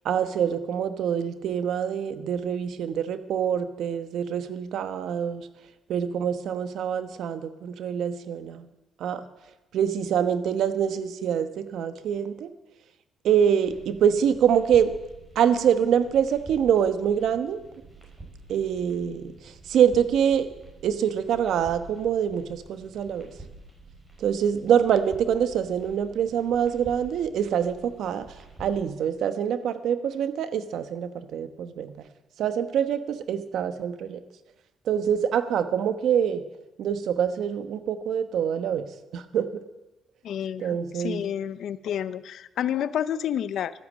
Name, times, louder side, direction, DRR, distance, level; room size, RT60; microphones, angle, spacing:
voice 1, 0.0-5.5 5.9-8.7 9.0-9.2 9.7-12.5 13.2-14.9 15.3-17.6 18.5-20.5 20.8-23.3 24.2-28.3 28.6-32.0 32.4-34.2 34.9-36.4 36.8-38.9 39.1-39.5 40.6-41.3, right 8 dB, 75° right, 11 dB, 1.1 m, -25 dB
sound 1, 13.7-28.8, right 3 dB, 20° right, 5.4 m, -48 dB
voice 2, 40.2-43.7, left 10 dB, 70° left, 16 dB, 0.6 m, -30 dB
13.0 x 10.0 x 7.5 m, 1.0 s
cardioid pair, 90°, 0 cm